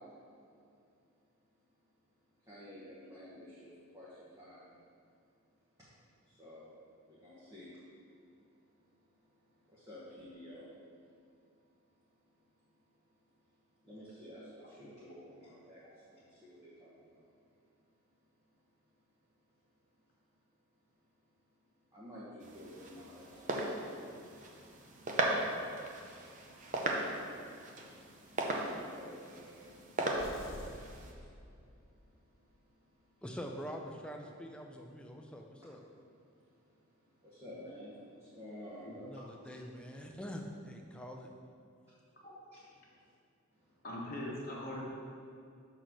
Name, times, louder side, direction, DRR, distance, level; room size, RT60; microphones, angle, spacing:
voice 1, 2.5-4.7 5.8-5.9 6.3-6.7 7.1-7.8 9.6-10.7 13.8-17.3 21.9-24.1 26.5-26.6 28.4-29.8 30.9-31.4 31.8-31.9 32.3-32.4 36.4-36.5 37.2-39.2 42.5-42.9 43.6-43.8, left 1 dB, 15° right, -10 dB, 1.1 m, -52 dB
sound 1, 22.4-31.1, right 2 dB, 35° right, 0.7 m, -38 dB
sound 2, 30.2-32.0, left 1 dB, 60° left, 0.7 m, -50 dB
voice 2, 33.2-35.8 39.0-41.3, equal, 5° left, 2 dB, 0.4 m, -45 dB
voice 3, 43.8-44.8, left 1 dB, 40° left, -4 dB, 1.3 m, -41 dB
6.4 x 3.9 x 6.0 m, 2.4 s
head